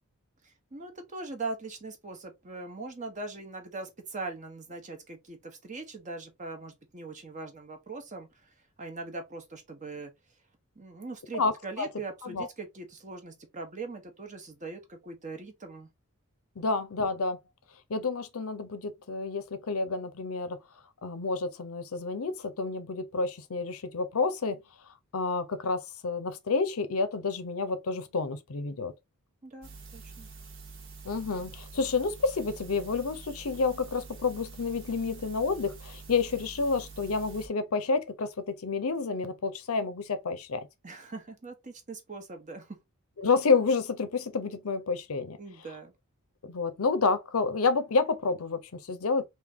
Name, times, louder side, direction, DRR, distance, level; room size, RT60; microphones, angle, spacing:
voice 1, 0.4-10.1 10.8-15.9 16.6-16.7 29.4-30.3 40.8-42.8 45.4-45.9, right 3 dB, 35° right, 0.9 m, -41 dB
voice 2, 16.6-17.4 17.9-20.6 21.0-24.6 25.1-28.9 31.0-40.7 43.2-45.4 46.4-49.3, left 4 dB, 70° left, 0.6 m, -29 dB
sound 1, 29.6-37.5, right 4 dB, 60° right, 1.3 m, -47 dB
3.6 x 2.6 x 3.4 m
head